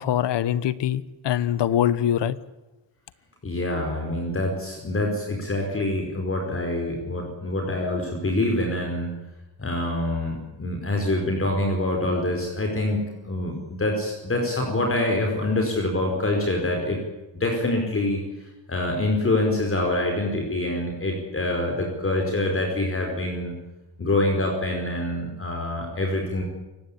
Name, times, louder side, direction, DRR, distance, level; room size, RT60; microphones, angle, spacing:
voice 1, 0.0-2.4, left 10 dB, 65° left, 17 dB, 1.2 m, -23 dB
voice 2, 3.4-9.2 9.6-17.0 17.4-18.2 18.7-23.5 24.0-26.4, left 1 dB, 30° left, 2 dB, 4.9 m, -25 dB
29.0 x 16.5 x 8.6 m, 1.0 s
cardioid pair, 115°, 45 cm